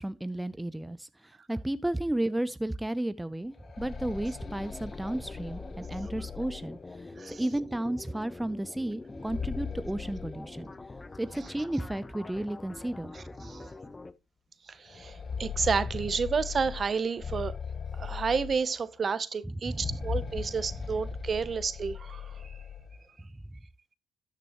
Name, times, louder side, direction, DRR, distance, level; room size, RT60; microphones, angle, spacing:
voice 1, 0.0-10.7 11.2-13.1 19.7-20.0, right 1 dB, 10° right, 0.5 m, -33 dB
sound 1, 3.4-7.2 9.0-11.2 11.5-11.6 12.5-12.6 13.1-13.2 14.8-19.0 19.6-23.0, left 6 dB, 45° left, 1.8 m, -39 dB
sound 2, 4.4-14.1, left 3 dB, 25° left, 0.7 m, -45 dB
voice 2, 13.1-13.7 14.7-17.5 18.0-22.6, right 5 dB, 45° right, 0.7 m, -31 dB
12.5 x 6.7 x 3.0 m
supercardioid pair, 65°, 0 cm